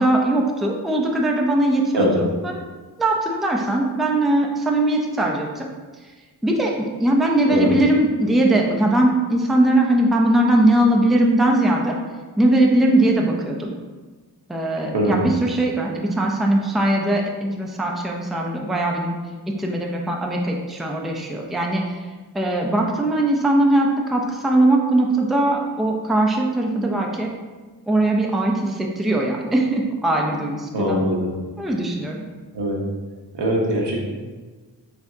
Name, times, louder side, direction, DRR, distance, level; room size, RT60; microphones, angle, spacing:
voice 1, 0.0-2.6 3.0-5.7 6.4-11.9 12.4-13.7 14.5-19.2 19.6-22.1 22.3-27.3 27.9-31.0 31.6-32.2, right 1 dB, ahead, 0 dB, 0.5 m, -20 dB
voice 2, 14.9-15.3 30.7-31.3 32.5-32.8 33.3-34.0, equal, 80° right, -3 dB, 1.0 m, -21 dB
4.5 x 3.4 x 2.7 m, 1.3 s
wide cardioid pair, 60°, 42 cm